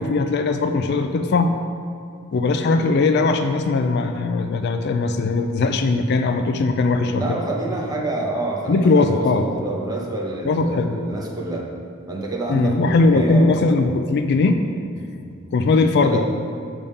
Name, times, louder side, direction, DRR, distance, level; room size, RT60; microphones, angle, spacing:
voice 1, 0.0-1.6 2.3-7.4 8.7-9.5 10.5-11.0 12.5-14.6 15.1-15.2 15.5-16.2, left 3 dB, 55° left, 7 dB, 0.3 m, -19 dB
voice 2, 7.1-11.7 12.1-14.1 16.0-16.2, right 2 dB, 20° right, -2 dB, 0.9 m, -28 dB
6.8 x 3.6 x 5.3 m, 2.4 s
head